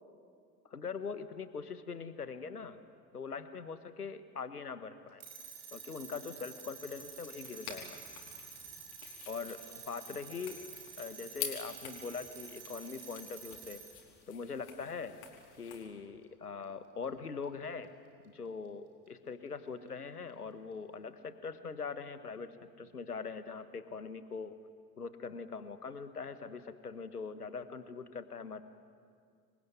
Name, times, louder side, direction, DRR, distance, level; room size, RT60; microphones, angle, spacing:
voice 1, 0.7-2.8 3.1-5.2 5.7-8.0 9.3-10.6 11.0-13.8 14.3-15.2 15.6-17.9 18.2-24.6 25.0-28.6, left 5 dB, 85° left, 12 dB, 1.3 m, -42 dB
sound 1, 5.2-14.0, right 6 dB, 65° right, 5.8 m, -50 dB
sound 2, 6.8-15.8, left 9 dB, 55° left, 5.0 m, -48 dB
27.0 x 22.5 x 9.7 m, 2.2 s
figure-of-eight pair, 70°, 45 cm